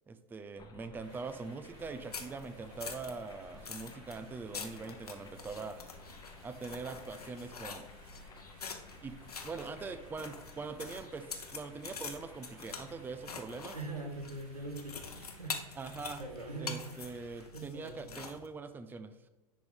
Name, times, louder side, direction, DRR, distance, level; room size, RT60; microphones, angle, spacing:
voice 1, 0.1-5.8 6.4-7.8 9.0-9.2 9.4-13.8 15.8-16.2 16.6-19.1, right 4 dB, 10° right, 11 dB, 0.4 m, -43 dB
sound 1, 0.6-17.5, left 4 dB, 20° left, 0.9 m, -56 dB
sound 2, 1.0-17.5, right 2 dB, 60° right, 2.3 m, -61 dB
sound 3, 1.8-18.5, left 5 dB, 85° left, 0.8 m, -46 dB
voice 2, 13.7-15.7 16.2-17.1 17.5-18.1, right 3 dB, 90° right, 4 dB, 1.2 m, -42 dB
10.0 x 4.0 x 3.4 m, 1.1 s
figure-of-eight pair, 85°, 19 cm